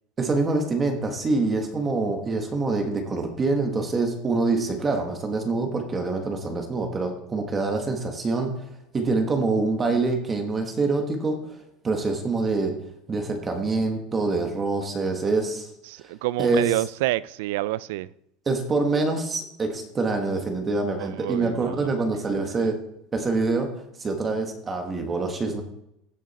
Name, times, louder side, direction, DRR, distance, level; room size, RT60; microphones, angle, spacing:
voice 1, 0.2-8.5 8.9-11.4 11.8-12.7 13.1-15.7 16.4-16.6 18.5-22.7 23.1-23.7 24.0-25.6, right 3 dB, 15° right, 1.4 m, -25 dB
voice 2, 15.9-18.1 21.0-21.9 22.6-22.7, right 17 dB, 75° right, 0.4 m, -28 dB
16.0 x 6.3 x 4.2 m
cardioid pair, 170°, 0 cm